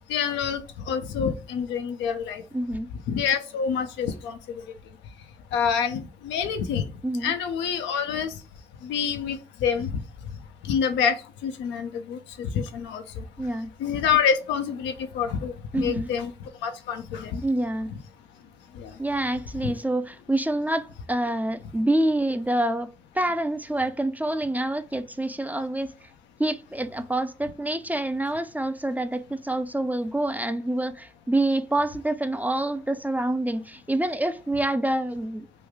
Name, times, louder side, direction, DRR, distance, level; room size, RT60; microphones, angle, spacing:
voice 1, 0.1-2.4 3.1-4.6 5.5-6.9 7.2-8.4 8.8-10.0 10.6-13.2 13.8-16.3 16.6-17.4 18.7-19.0 19.6-19.7, left 7 dB, 85° left, 0.4 m, -27 dB
voice 2, 2.5-2.9 7.0-7.3 13.4-13.7 15.7-16.1 17.4-17.9 19.0-22.9 23.1-25.9 26.4-35.5, right 1 dB, 10° right, 0.4 m, -27 dB
3.2 x 2.3 x 3.4 m
hypercardioid pair, 40°, 18 cm